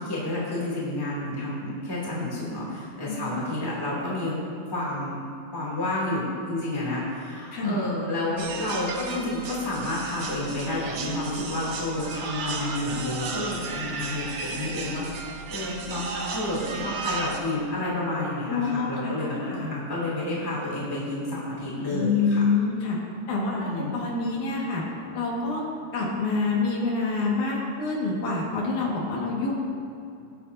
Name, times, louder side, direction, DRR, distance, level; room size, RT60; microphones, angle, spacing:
voice 1, 0.0-5.2 5.5-22.5 23.5-23.9, left 1 dB, 10° left, -6 dB, 2.4 m, -30 dB
voice 2, 3.1-3.4 7.5-7.8 18.5-19.3 19.6-19.7 21.9-23.0 23.3-24.9 25.1-25.6 25.9-29.7, left 4 dB, 85° left, -3 dB, 3.3 m, -27 dB
sound 1, 8.4-17.4, right 4 dB, 70° right, 1.4 m, -34 dB
20.0 x 8.6 x 2.7 m, 2.6 s
omnidirectional pair, 3.4 m